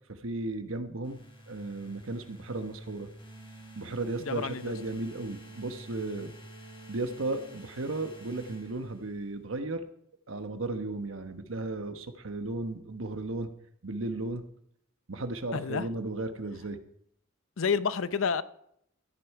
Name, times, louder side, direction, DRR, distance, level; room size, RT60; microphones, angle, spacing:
voice 1, 0.1-1.2 1.5-3.1 3.7-6.3 6.9-9.9 10.3-13.5 13.8-14.4 15.1-16.8, right 2 dB, 75° right, 1.1 m, -35 dB
sound 1, 1.0-9.4, right 1 dB, 25° left, 4.5 m, -49 dB
voice 2, 4.3-4.7 15.5-15.9 17.6-18.4, left 6 dB, 75° left, 0.6 m, -29 dB
14.0 x 10.0 x 4.6 m
head